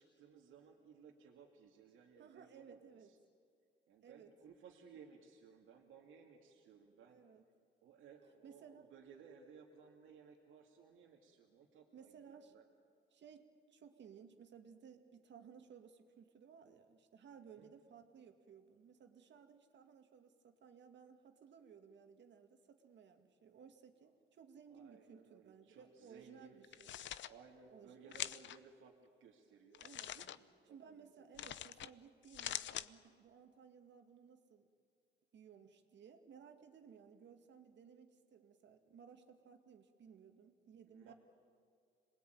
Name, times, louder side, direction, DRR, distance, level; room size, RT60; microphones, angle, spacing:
voice 1, 0.0-3.2 3.9-7.2 7.8-12.6 17.4-17.7 24.7-26.7 27.2-29.8 30.1-31.3 40.9-41.1, right 6 dB, 85° right, 0 dB, 2.4 m, -61 dB
voice 2, 2.2-3.2 4.0-4.4 7.1-7.4 8.4-8.9 11.9-12.5 13.1-26.9 27.7-28.3 29.8-30.2 30.7-34.7 35.3-41.1, right 7 dB, 65° right, 6 dB, 2.1 m, -59 dB
sound 1, 26.6-27.3 28.1-28.6 29.7-30.4 31.4-31.9 32.2-32.9, left 11 dB, 70° left, 0.8 m, -44 dB
26.5 x 20.5 x 9.3 m, 2.2 s
cardioid pair, 90°, 20 cm